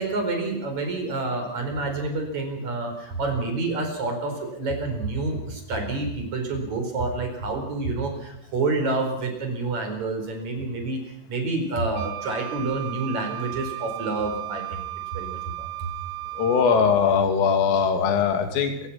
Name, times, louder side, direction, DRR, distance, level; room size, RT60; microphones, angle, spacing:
voice 1, 0.0-11.0 11.3-14.8 15.1-15.9, right 3 dB, 35° right, 4 dB, 5.3 m, -28 dB
Wind instrument woodwind instrument, 11.9-17.1, right 18 dB, 75° right, 3.9 m, -35 dB
voice 2, 16.4-18.9, left 6 dB, 75° left, 6 dB, 5.0 m, -21 dB
29.0 x 15.5 x 5.8 m, 0.82 s
omnidirectional pair, 5.9 m